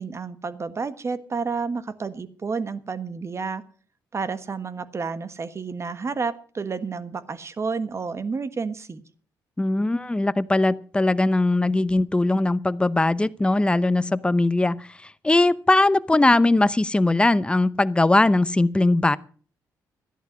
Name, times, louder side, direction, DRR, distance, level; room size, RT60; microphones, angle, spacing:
voice 1, 0.0-3.6 4.1-9.0, right 4 dB, 40° right, 13 dB, 1.4 m, -30 dB
voice 2, 9.6-19.2, left 2 dB, 15° left, 17 dB, 0.8 m, -20 dB
14.0 x 11.0 x 6.3 m, 0.43 s
cardioid pair, 70°, 7 cm